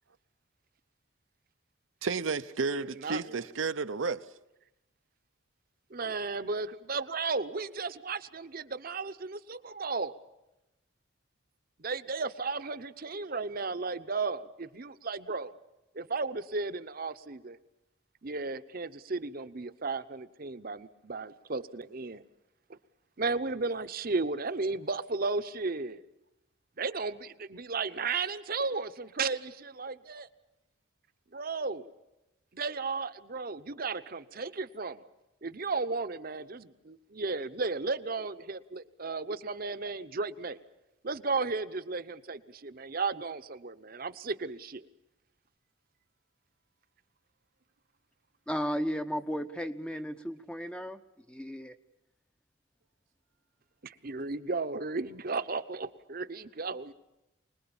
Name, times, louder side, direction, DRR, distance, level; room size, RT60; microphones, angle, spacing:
voice 1, 2.0-4.3, right 4 dB, 80° right, 0.7 m, -32 dB
voice 2, 3.0-3.4 5.9-10.1 11.8-15.5 15.9-17.6 18.2-22.2 23.2-26.1 26.8-30.3 31.3-31.9 32.5-35.1 35.4-40.6 41.0-44.8 53.8-56.9, right 4 dB, 45° right, 0.9 m, -34 dB
voice 3, 48.5-51.0 51.3-51.7, equal, 5° left, 0.7 m, -34 dB
25.5 x 20.5 x 7.1 m
head